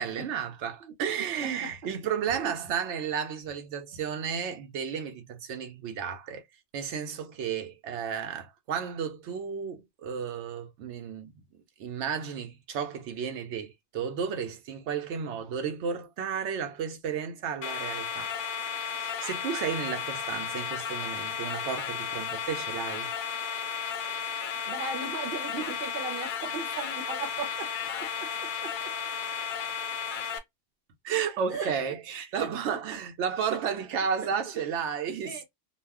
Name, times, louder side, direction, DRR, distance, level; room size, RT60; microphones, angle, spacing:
voice 1, 0.0-6.4 6.7-11.3 11.8-18.3 18.8-23.1 27.9-28.0 28.3-28.5 31.0-35.4, right 7 dB, 85° right, 0.9 m, -33 dB
sound 1, 17.6-30.4, left 7 dB, 60° left, 0.6 m, -34 dB
voice 2, 24.7-27.7 28.6-28.7 31.5-31.7 32.4-32.5 35.2-35.4, right 4 dB, 60° right, 0.8 m, -36 dB
2.3 x 2.1 x 3.4 m
omnidirectional pair, 1.2 m